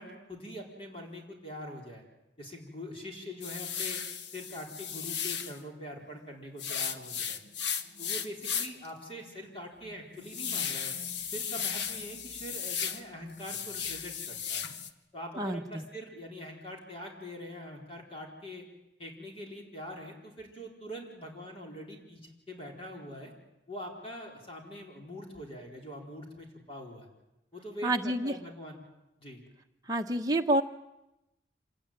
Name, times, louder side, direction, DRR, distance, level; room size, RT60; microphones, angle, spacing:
voice 1, 0.0-2.0 2.4-4.0 4.3-7.4 8.0-10.9 11.3-14.7 15.1-18.6 19.0-23.3 23.7-27.1 27.5-28.8 29.2-29.4, equal, 30° left, 0 dB, 4.5 m, -43 dB
sound 1, 3.4-5.6 6.6-8.9 9.3-9.4 9.8-13.0 13.3-14.9, left 7 dB, 70° left, 1.3 m, -35 dB
voice 2, 15.4-15.8 27.8-28.3 29.9-30.6, right 1 dB, 20° right, 3 dB, 1.2 m, -28 dB
26.5 x 19.0 x 9.0 m, 0.94 s
head